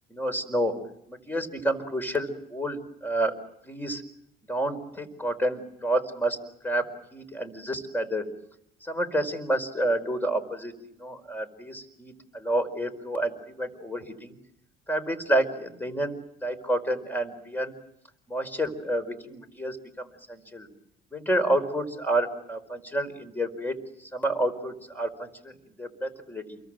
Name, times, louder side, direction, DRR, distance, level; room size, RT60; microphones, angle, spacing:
voice 1, 0.1-0.8 1.1-3.3 3.6-4.0 4.5-6.4 6.6-8.3 8.8-10.7 11.0-14.4 14.9-17.8 18.3-20.7 21.1-26.6, right 1 dB, 10° left, 12 dB, 4.8 m, -29 dB
29.0 x 23.0 x 7.7 m, 0.75 s
cardioid pair, 110°, 17 cm